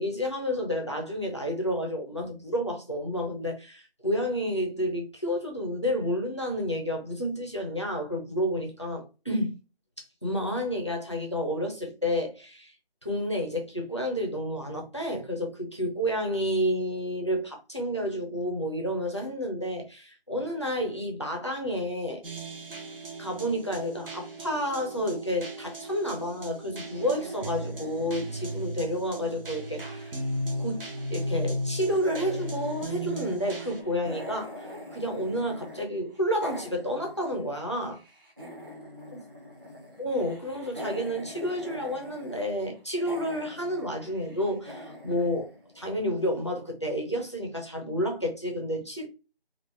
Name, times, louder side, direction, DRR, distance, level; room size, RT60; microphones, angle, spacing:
voice 1, 0.0-9.5 10.2-12.7 13.0-22.2 23.2-30.1 30.6-30.8 31.1-34.6 34.9-38.0 39.1-39.2 40.0-49.1, equal, 30° left, 0.6 m, -30 dB
sound 1, 22.2-33.8, equal, 60° right, 1.0 m, -36 dB
sound 2, 27.0-30.0 30.3-31.6 31.9-35.8 36.1-46.2, left 1 dB, 20° right, 1.0 m, -44 dB
3.6 x 2.4 x 3.1 m
figure-of-eight pair, 175°, 31 cm